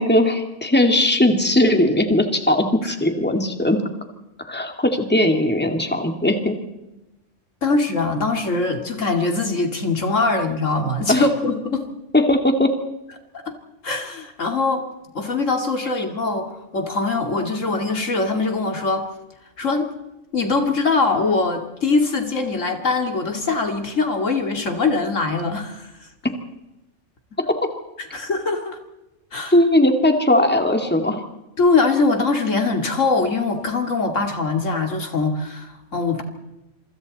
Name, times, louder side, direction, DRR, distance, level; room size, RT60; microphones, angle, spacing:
voice 1, 0.0-3.8 4.4-6.6 11.1-11.2 12.1-12.7 29.5-31.2, left 1 dB, 10° left, 4 dB, 2.3 m, -18 dB
voice 2, 7.6-11.9 13.4-13.5 13.8-14.8 15.1-19.1 19.6-19.9 20.3-26.1 28.0-28.8 29.3-29.5 31.6-36.2, left 3 dB, 85° left, 4 dB, 2.9 m, -22 dB
27.0 x 25.0 x 4.2 m, 0.97 s
omnidirectional pair, 1.3 m